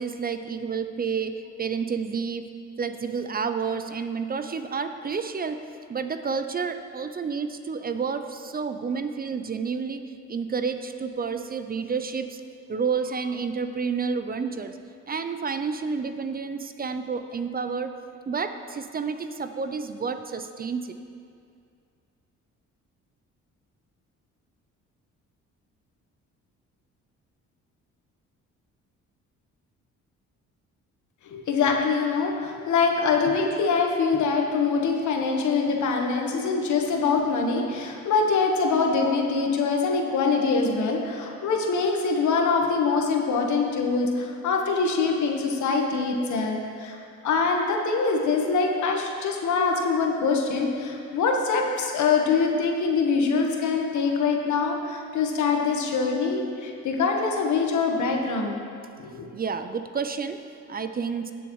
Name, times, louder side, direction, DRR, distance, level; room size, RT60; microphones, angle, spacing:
voice 1, 0.0-12.4 12.7-14.8 15.1-18.0 18.3-20.9 59.3-61.3, right 5 dB, 30° right, 9 dB, 0.5 m, -30 dB
voice 2, 31.2-58.6 59.0-59.2, left 4 dB, 75° left, 1 dB, 1.4 m, -24 dB
17.5 x 7.0 x 3.2 m, 2.4 s
cardioid pair, 90°, 30 cm